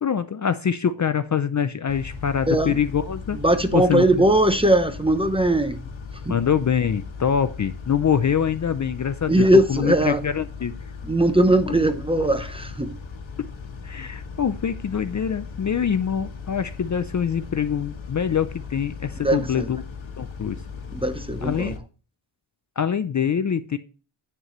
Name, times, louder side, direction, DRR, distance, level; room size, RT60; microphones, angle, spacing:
voice 1, 0.0-3.4 3.7-4.0 6.3-9.4 9.7-10.7 13.4-13.5 13.8-19.8 20.2-20.6 21.4-21.7 22.8-23.8, left 8 dB, 40° left, 0.4 m, -24 dB
Car / Idling / Accelerating revving vroom, 1.9-21.8, left 5 dB, 65° left, 1.3 m, -37 dB
voice 2, 2.5-2.8 3.3-5.8 6.1-6.4 9.3-10.3 11.0-13.0 19.1-19.8 20.9-21.8, right 1 dB, 10° right, 0.6 m, -20 dB
9.0 x 6.4 x 3.0 m
wide cardioid pair, 160°, 49 cm